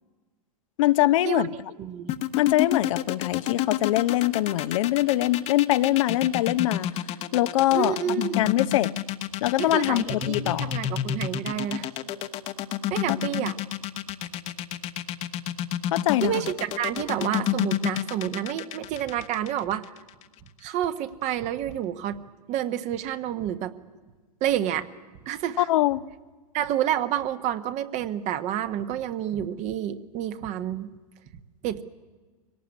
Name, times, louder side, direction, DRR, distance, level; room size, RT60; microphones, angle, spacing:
voice 1, 0.8-1.5 2.4-7.0 7.3-7.9 8.4-8.9 9.4-10.7 13.1-13.4 15.9-16.3 25.6-26.0, left 15 dB, 55° left, 14 dB, 0.7 m, -23 dB
voice 2, 1.8-2.2 7.7-8.5 9.6-11.9 12.9-13.6 16.2-19.8 20.6-22.2 22.5-23.7 24.4-24.9 25.2-25.7 26.5-30.9 31.6-31.8, right 10 dB, 35° right, 10 dB, 1.3 m, -29 dB
sound 1, 2.1-20.2, left 12 dB, 35° left, 1.1 m, -29 dB
24.0 x 18.0 x 9.7 m, 1.4 s
hypercardioid pair, 100°, 20 cm